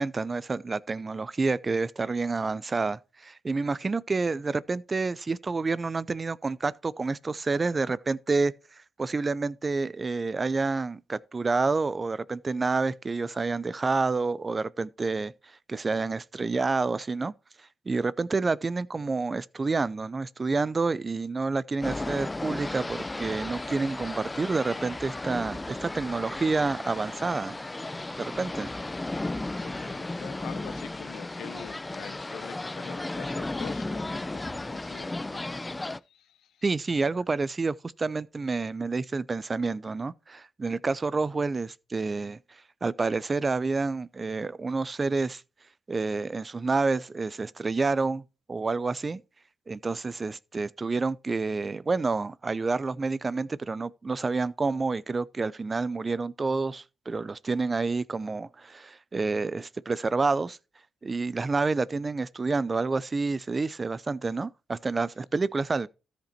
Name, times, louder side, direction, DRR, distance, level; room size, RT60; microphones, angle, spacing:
voice 1, 0.0-8.5 9.0-15.3 15.7-17.3 17.9-27.5 28.2-28.7 36.6-42.4 42.8-45.4 45.9-48.2 48.5-49.2 49.7-60.6 61.0-65.9, right 3 dB, 35° right, 0.5 m, -28 dB
sound 1, 21.8-36.0, left 2 dB, 20° left, 0.4 m, -35 dB
voice 2, 29.6-35.5 36.1-36.5 37.0-37.1, left 10 dB, 85° left, 0.7 m, -45 dB
13.5 x 5.2 x 4.4 m
cardioid pair, 75°, 0 cm